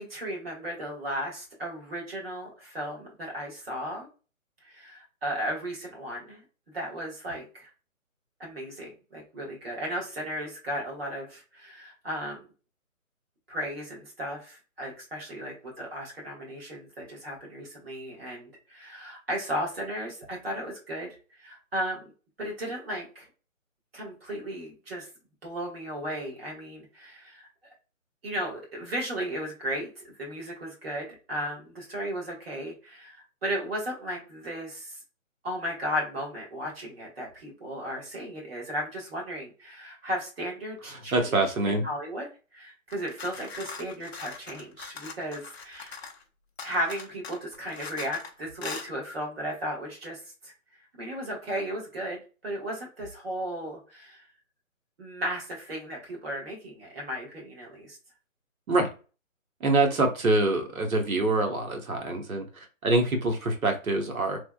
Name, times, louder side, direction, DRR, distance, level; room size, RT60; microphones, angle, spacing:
voice 1, 0.0-4.1 4.6-6.4 6.7-7.7 8.4-12.4 13.5-22.1 22.4-23.3 23.9-25.1 25.4-27.5 28.2-35.0 35.4-41.3 41.8-42.3 42.5-46.0 46.6-50.5 51.0-54.2 55.0-58.0, equal, 45° right, -3 dB, 1.4 m, -35 dB
voice 2, 40.9-41.9 58.7-58.9 59.6-64.4, right 2 dB, 80° right, 3 dB, 1.1 m, -25 dB
sound 1, 42.9-46.2 46.6-48.3 48.6-48.9, left 5 dB, 50° left, 0.5 m, -41 dB
3.3 x 2.2 x 2.2 m, 0.34 s
hypercardioid pair, 170°, 41 cm